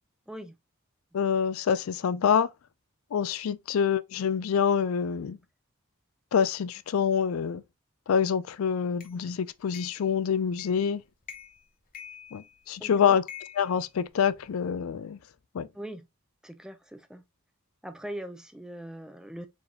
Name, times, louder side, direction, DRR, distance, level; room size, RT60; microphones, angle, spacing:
voice 1, 1.1-2.5 3.1-5.4 6.3-7.6 8.1-11.0 12.3-13.2 13.6-15.2 15.5-15.7, left 7 dB, 80° left, 0.4 m, -26 dB
sound 1, 9.0-9.1 9.7-10.1 10.6-10.9 11.2-11.6 11.9-12.8 13.3-14.5, left 8 dB, 40° left, 1.0 m, -46 dB
voice 2, 12.8-13.2 15.7-16.1 16.4-17.2 17.8-19.5, right 1 dB, 5° right, 0.5 m, -41 dB
4.5 x 3.4 x 2.8 m
head